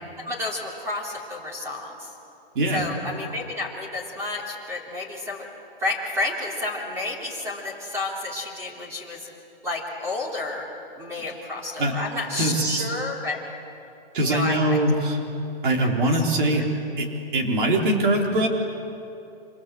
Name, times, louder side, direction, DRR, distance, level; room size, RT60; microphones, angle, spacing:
voice 1, 0.2-2.1 2.7-5.5 5.8-9.3 9.6-10.6 11.0-13.4 14.2-14.8, left 2 dB, 10° right, -3 dB, 3.5 m, -30 dB
voice 2, 2.5-2.9 11.2-11.3 11.8-11.9 12.4-12.9 14.1-15.2 15.6-16.7 17.0-17.1 17.3-18.5, right 1 dB, 55° right, 1 dB, 4.6 m, -22 dB
27.5 x 26.5 x 8.0 m, 2.8 s
hypercardioid pair, 180°, 30 cm